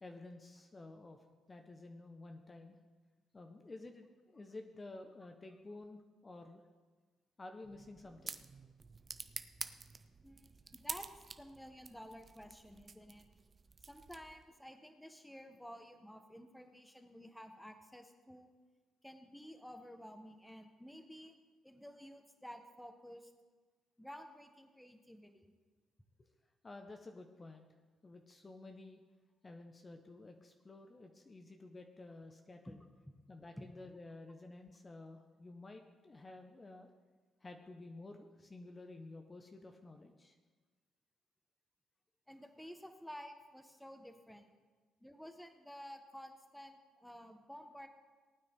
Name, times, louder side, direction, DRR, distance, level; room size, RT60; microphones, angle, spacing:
voice 1, 0.0-2.8 3.3-6.6 7.4-8.4 26.6-27.7 28.0-29.0 29.4-32.8 33.3-36.9 37.4-40.3, left 2 dB, 30° left, 4 dB, 1.2 m, -52 dB
sound 1, 7.6-14.5, right 4 dB, 40° right, 0.7 m, -49 dB
voice 2, 10.2-11.1 11.4-13.3 13.8-18.5 19.0-21.3 21.6-23.3 24.0-25.4 32.7-32.8 33.6-33.7 42.3-44.5 45.0-47.9, equal, 5° left, 6 dB, 1.5 m, -52 dB
19.0 x 9.2 x 3.8 m, 1.4 s
hypercardioid pair, 45°, 0 cm